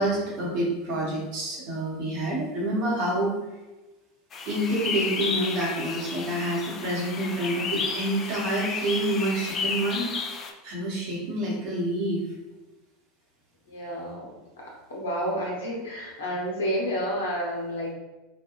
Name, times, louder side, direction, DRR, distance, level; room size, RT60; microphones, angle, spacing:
voice 1, 0.0-3.4 4.5-10.1 10.6-12.2, right 1 dB, 60° right, -4 dB, 1.1 m, -28 dB
sound 1, 4.3-10.5, left 5 dB, 35° left, 0.4 m, -32 dB
voice 2, 13.7-14.3 14.6-17.9, equal, 75° left, -3 dB, 0.9 m, -30 dB
3.3 x 2.3 x 2.5 m, 1.1 s
hypercardioid pair, 85°, 0 cm